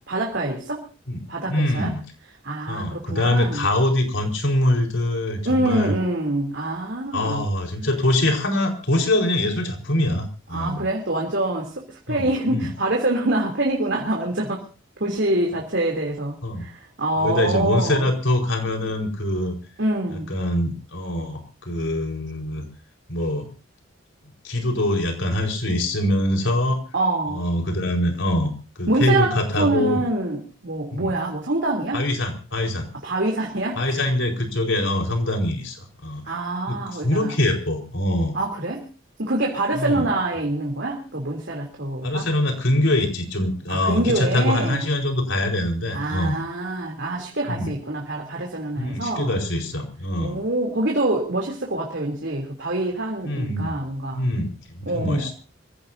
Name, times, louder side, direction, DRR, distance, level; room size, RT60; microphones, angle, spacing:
voice 1, 0.1-0.8 1.3-1.9 2.4-3.7 5.4-7.4 10.5-14.7 15.0-18.1 19.8-20.3 26.9-27.5 28.9-32.0 33.0-34.0 36.2-37.3 38.3-38.9 39.2-42.3 43.7-44.9 45.9-49.4 50.2-54.3 54.9-55.3, right 2 dB, 60° right, 0 dB, 3.2 m, -25 dB
voice 2, 1.5-2.0 2.7-5.9 7.1-10.8 12.1-12.7 16.4-16.7 17.2-19.5 20.1-22.6 23.1-23.5 24.4-26.8 27.3-28.5 28.8-30.0 30.9-31.1 31.9-32.9 33.8-36.2 36.7-38.3 39.7-40.1 42.0-46.4 47.5-47.7 48.8-50.4 53.2-53.8 54.1-55.3, left 1 dB, 75° left, 3 dB, 4.7 m, -24 dB
26.5 x 16.0 x 2.8 m, 0.34 s
head